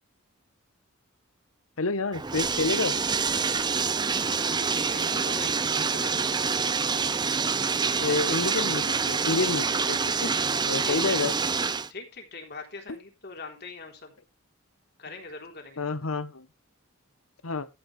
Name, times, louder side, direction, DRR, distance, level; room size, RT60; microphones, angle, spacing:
voice 1, 1.8-3.0 8.0-10.3 10.7-11.3 12.9-13.0 15.8-16.5 17.4-17.7, left 3 dB, 80° left, 1.1 m, -29 dB
Bathtub (filling or washing), 2.1-11.9, right 5 dB, 20° right, 0.6 m, -26 dB
voice 2, 4.3-6.3 10.8-11.2 11.9-14.1 15.0-15.8, left 3 dB, 50° left, 3.7 m, -42 dB
14.5 x 8.4 x 3.3 m
head